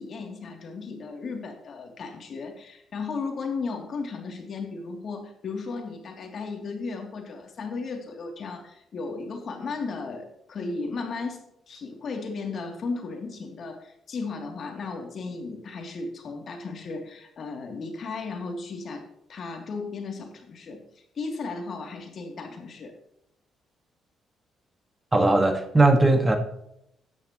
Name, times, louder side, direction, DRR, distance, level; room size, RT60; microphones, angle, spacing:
voice 1, 0.0-11.4 11.7-20.8 21.1-22.9, left 4 dB, 55° left, 3 dB, 2.9 m, -35 dB
voice 2, 25.1-26.4, right 2 dB, 15° right, 6 dB, 1.6 m, -19 dB
13.0 x 10.0 x 3.1 m, 0.77 s
cardioid pair, 90°, 0 cm